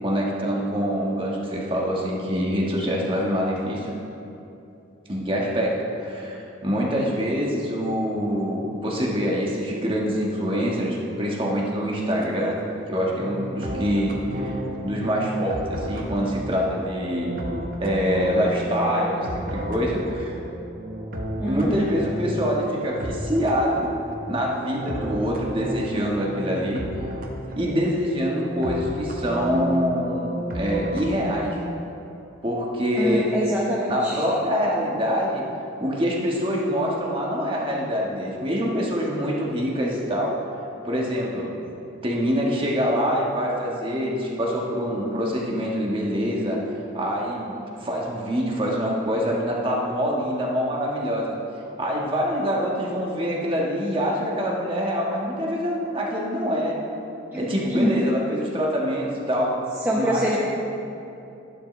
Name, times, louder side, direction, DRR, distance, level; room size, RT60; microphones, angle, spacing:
voice 1, 0.0-3.9 5.1-12.6 12.9-14.5 14.8-17.4 17.8-20.4 21.5-23.9 24.3-26.8 27.5-31.6 32.4-33.2 33.9-35.4 35.8-40.4 40.8-41.5 42.0-46.6 46.9-51.4 51.8-56.8 57.4-59.6 59.9-60.4, equal, 25° right, -3 dB, 1.5 m, -25 dB
sound 1, 12.1-31.8, equal, 45° right, 1.0 m, -33 dB
voice 2, 21.4-22.0 33.0-34.2 57.3-58.0 59.8-60.4, equal, 10° right, -5 dB, 0.9 m, -25 dB
12.5 x 11.5 x 3.3 m, 2.8 s
head